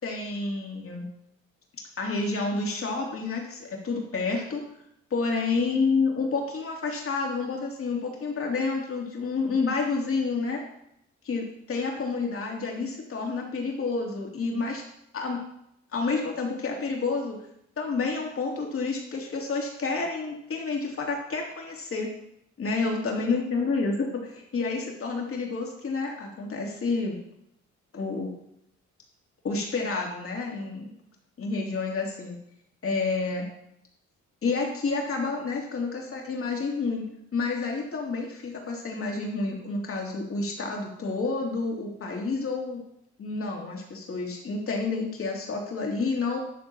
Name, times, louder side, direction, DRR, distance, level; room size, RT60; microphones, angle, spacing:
voice 1, 0.0-1.1 2.0-4.6 5.1-10.6 11.2-14.8 15.1-15.4 15.9-17.4 17.8-22.1 22.6-27.2 27.9-28.3 29.4-30.9 31.4-32.4 32.8-33.4 34.4-37.0 37.3-42.8 43.2-46.4, left 4 dB, 45° left, 0 dB, 2.9 m, -29 dB
11.0 x 3.8 x 6.9 m, 0.76 s
cardioid pair, 90°, 30 cm